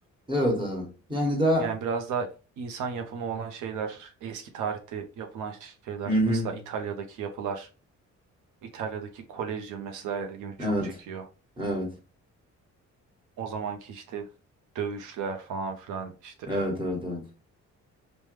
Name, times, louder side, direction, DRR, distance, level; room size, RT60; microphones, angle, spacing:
voice 1, 0.3-1.7 6.1-6.5 10.6-11.0 11.6-11.9 16.5-17.2, equal, 15° right, 1.3 m, -26 dB
voice 2, 1.6-2.3 2.6-7.7 8.6-11.2 13.4-14.3 14.7-16.6, right 6 dB, 80° right, 0.5 m, -34 dB
3.1 x 2.1 x 3.1 m
cardioid pair, 90°, 30 cm